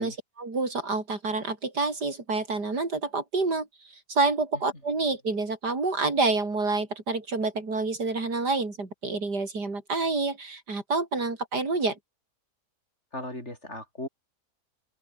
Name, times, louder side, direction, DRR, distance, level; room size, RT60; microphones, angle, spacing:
voice 1, 0.0-12.0, right 3 dB, 90° right, 5.0 m, -28 dB
voice 2, 13.1-14.1, left 1 dB, 45° left, 7.1 m, -37 dB
open air
omnidirectional pair, 1.7 m